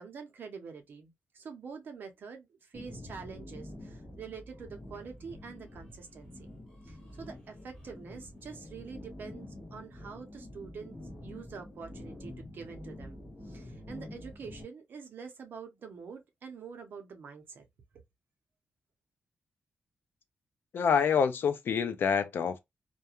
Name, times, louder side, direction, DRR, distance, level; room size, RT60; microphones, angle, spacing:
voice 1, 0.0-6.6 6.8-17.7, right 5 dB, 55° right, 0.6 m, -46 dB
sound 1, 2.7-14.6, left 1 dB, 15° left, 1.0 m, -47 dB
voice 2, 20.7-22.6, left 6 dB, 60° left, 0.4 m, -27 dB
2.4 x 2.2 x 2.8 m
wide cardioid pair, 180°, 4 cm